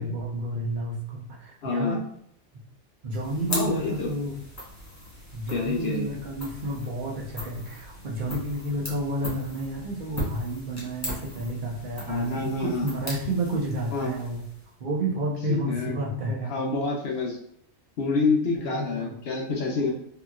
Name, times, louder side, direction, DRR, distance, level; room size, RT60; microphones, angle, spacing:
voice 1, 0.0-2.0 3.0-4.4 5.3-14.4 14.8-16.6 18.5-19.1, right 1 dB, 50° right, -3 dB, 0.8 m, -30 dB
voice 2, 1.6-2.0 3.5-4.1 5.5-6.1 12.1-12.9 13.9-14.1 15.5-16.0 16.5-17.4 18.0-19.9, left 3 dB, 60° left, -1 dB, 0.9 m, -27 dB
sound 1, 3.1-14.8, equal, 15° left, 0.7 m, -39 dB
3.0 x 2.7 x 2.3 m, 0.72 s
omnidirectional pair, 1.2 m